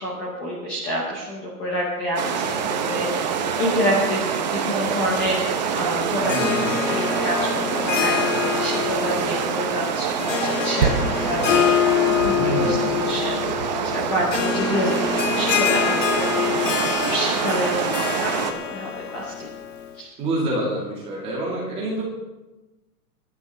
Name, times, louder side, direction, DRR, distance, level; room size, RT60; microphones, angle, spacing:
voice 1, 0.0-10.9 11.3-11.7 12.1-13.5 13.8-19.5 19.9-20.1, equal, 10° left, -5 dB, 0.7 m, -28 dB
sound 1, 2.2-18.5, right 6 dB, 30° right, 0.9 m, -25 dB
voice 2, 6.1-6.9 12.3-13.0 20.2-22.0, right 1 dB, 10° right, -3 dB, 2.1 m, -27 dB
Harp, 6.2-19.9, left 9 dB, 55° left, 1.3 m, -26 dB
22.0 x 11.5 x 3.4 m, 1.1 s
hypercardioid pair, 175°, 46 cm